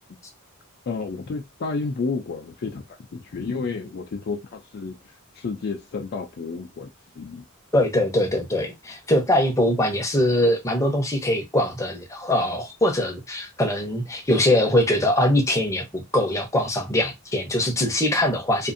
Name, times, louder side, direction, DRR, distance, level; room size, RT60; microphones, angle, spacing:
voice 1, 0.9-6.9 7.2-7.4, left 4 dB, 50° left, 0.4 m, -31 dB
voice 2, 7.7-18.7, left 1 dB, 15° left, 0.7 m, -22 dB
2.6 x 2.5 x 2.5 m
head